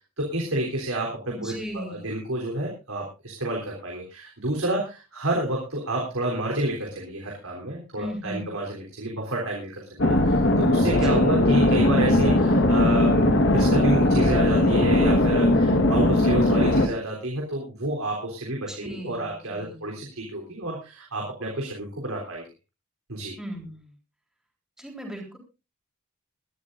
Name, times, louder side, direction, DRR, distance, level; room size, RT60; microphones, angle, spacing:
voice 1, 0.2-22.4 23.1-23.4, right 1 dB, 80° right, -1 dB, 3.7 m, -29 dB
voice 2, 1.3-2.1 8.0-8.5 10.8-11.6 18.7-20.0 23.4-24.0 24.8-25.4, equal, 5° right, 1 dB, 3.8 m, -38 dB
sound 1, 10.0-16.9, left 1 dB, 55° left, 1.5 m, -19 dB
23.0 x 12.0 x 2.6 m, 0.29 s
head